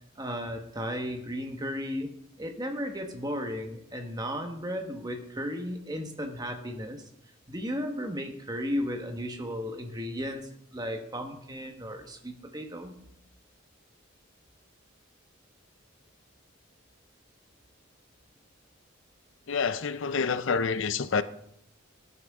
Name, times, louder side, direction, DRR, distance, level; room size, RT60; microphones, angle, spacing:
voice 1, 0.2-7.0 7.5-12.9, equal, 20° right, 1.4 m, -35 dB
voice 2, 19.5-21.2, left 5 dB, 65° left, 0.6 m, -27 dB
18.0 x 11.0 x 3.7 m
head